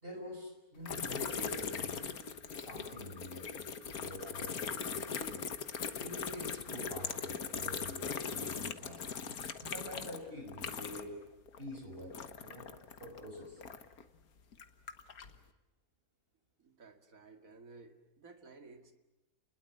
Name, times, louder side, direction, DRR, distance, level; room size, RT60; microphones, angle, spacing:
voice 1, 0.0-2.1 2.5-5.5 5.9-9.0 9.6-11.2 11.6-12.7 13.0-13.6, left 1 dB, 40° right, 2 dB, 6.1 m, -46 dB
sound 1, 0.9-11.2 11.5-14.0 14.5-15.4, left 6 dB, 90° left, 1.8 m, -40 dB
voice 2, 16.6-18.9, right 3 dB, 70° right, 7 dB, 2.6 m, -55 dB
29.5 x 21.5 x 7.8 m, 1.0 s
omnidirectional pair, 1.5 m